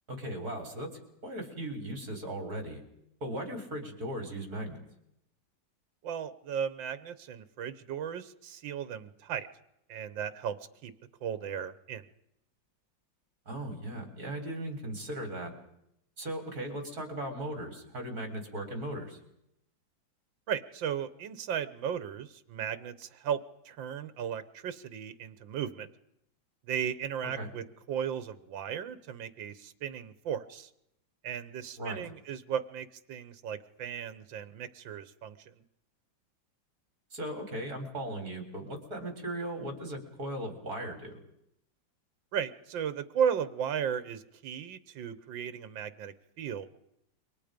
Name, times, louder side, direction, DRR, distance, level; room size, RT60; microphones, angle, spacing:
voice 1, 0.1-0.9 1.2-2.8 3.2-4.8 13.5-15.6 16.2-19.2 27.4-27.5 31.8-32.0 37.1-41.2, right 1 dB, 50° right, 5 dB, 4.8 m, -37 dB
voice 2, 6.0-9.5 9.9-10.6 10.8-10.9 11.2-12.1 20.5-23.4 23.7-25.9 26.6-30.7 31.2-35.6 42.3-46.7, right 8 dB, 80° right, 13 dB, 1.8 m, -35 dB
28.5 x 24.0 x 5.2 m, 0.79 s
omnidirectional pair, 2.0 m